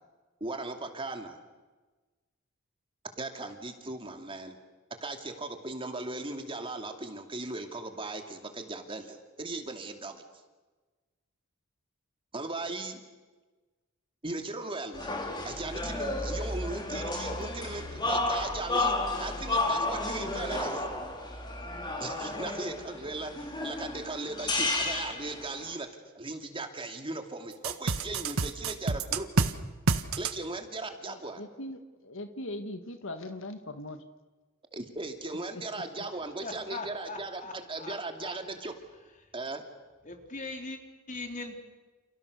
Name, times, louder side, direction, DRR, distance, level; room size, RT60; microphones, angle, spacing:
voice 1, 0.4-1.4 3.2-4.6 5.0-10.2 12.3-13.0 14.2-15.1 15.4-20.8 22.0-25.9 26.1-29.4 30.2-31.4 34.7-38.7 39.3-39.6, right 2 dB, 25° right, 5 dB, 2.7 m, -38 dB
sound 1, 14.9-25.7, left 2 dB, 20° left, 4.2 m, -32 dB
sound 2, 27.6-29.5 29.9-30.3, right 3 dB, 90° right, 1.6 m, -27 dB
voice 2, 31.1-34.0 36.0-36.1, left 1 dB, 65° left, 8 dB, 1.9 m, -40 dB
voice 3, 36.4-37.9 38.2-38.4 40.0-40.8 41.1-41.6, left 3 dB, 40° left, 4 dB, 4.2 m, -40 dB
30.0 x 29.5 x 6.8 m, 1.3 s
head